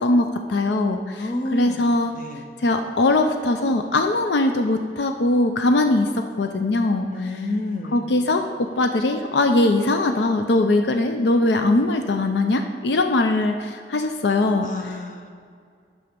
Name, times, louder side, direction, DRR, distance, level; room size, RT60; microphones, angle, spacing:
voice 1, 0.0-2.1 2.6-6.1 6.4-7.3 7.9-15.0, left 2 dB, 80° left, 6 dB, 0.5 m, -21 dB
voice 2, 1.2-1.8 2.1-2.4 7.1-8.0 14.6-15.3, left 2 dB, 45° left, 4 dB, 0.8 m, -29 dB
9.8 x 6.3 x 5.1 m, 2.2 s
head